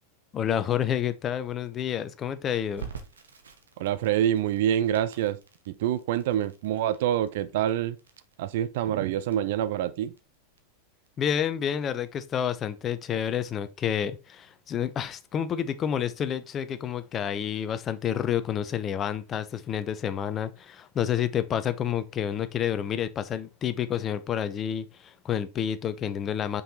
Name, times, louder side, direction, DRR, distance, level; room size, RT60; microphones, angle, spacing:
voice 1, 0.3-2.9 11.2-26.6, left 9 dB, 30° left, 0.8 m, -29 dB
Crackle, 2.8-13.5, right 7 dB, 75° right, 1.3 m, -49 dB
voice 2, 3.8-5.4 5.7-8.0 8.4-10.1, right 11 dB, 55° right, 0.5 m, -26 dB
5.6 x 5.6 x 4.2 m
figure-of-eight pair, 90°, 0 cm